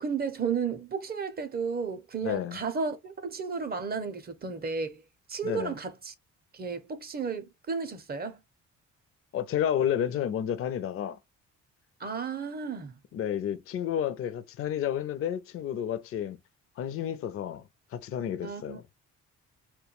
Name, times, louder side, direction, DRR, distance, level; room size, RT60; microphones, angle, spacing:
voice 1, 0.0-5.0 5.3-6.1 6.5-8.4 12.0-12.9 18.4-18.8, right 5 dB, 30° right, 0.5 m, -33 dB
voice 2, 2.2-2.6 5.4-5.7 9.3-11.2 13.1-16.4 16.8-17.6 17.9-18.8, left 9 dB, 50° left, 0.4 m, -31 dB
2.2 x 2.2 x 2.9 m
cardioid pair, 90°, 30 cm